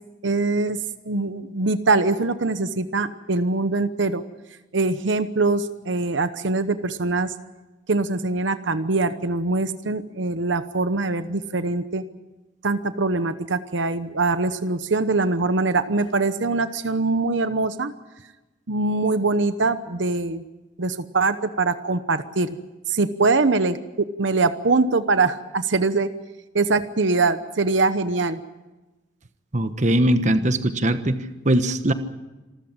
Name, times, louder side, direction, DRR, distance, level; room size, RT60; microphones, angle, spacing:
voice 1, 0.2-0.8 1.0-4.2 4.7-7.3 7.9-12.0 12.6-17.9 18.7-20.4 20.8-22.5 22.9-26.1 26.5-28.4, right 3 dB, 75° right, 11 dB, 1.0 m, -23 dB
voice 2, 29.5-31.2 31.4-31.9, right 1 dB, 40° right, 10 dB, 1.2 m, -20 dB
27.0 x 14.0 x 8.9 m, 1.1 s
head